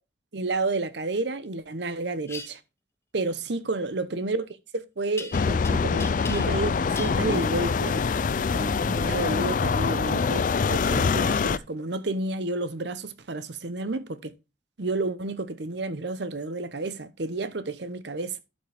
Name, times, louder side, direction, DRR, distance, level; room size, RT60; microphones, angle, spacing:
voice 1, 0.3-2.6 3.1-8.0 8.5-14.3 14.8-18.4, right 2 dB, 60° right, 0.9 m, -31 dB
sound 1, 2.3-2.5 5.2-5.7 6.0-6.7 7.0-7.2, left 3 dB, 15° left, 0.9 m, -38 dB
sound 2, 5.3-11.6, left 5 dB, 45° left, 0.4 m, -24 dB
12.0 x 5.1 x 3.4 m
head